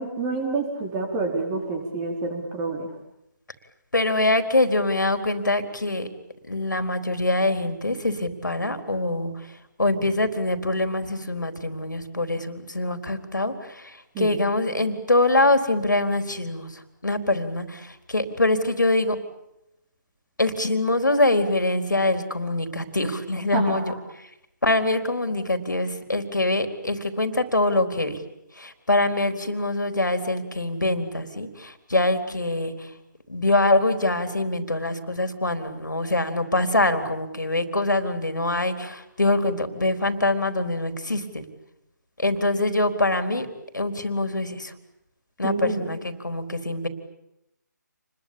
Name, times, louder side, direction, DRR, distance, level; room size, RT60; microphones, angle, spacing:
voice 1, 0.0-2.9 14.1-14.4 23.5-23.8 45.4-45.8, right 3 dB, 15° right, 3 dB, 4.6 m, -28 dB
voice 2, 3.9-6.1 6.5-9.3 9.8-19.2 20.4-23.9 24.6-28.2 28.6-32.9 33.3-41.5 42.2-43.5 43.7-44.7 45.4-46.9, left 2 dB, 80° left, 8 dB, 4.1 m, -24 dB
29.5 x 22.0 x 8.8 m, 0.83 s
figure-of-eight pair, 150°, 10 cm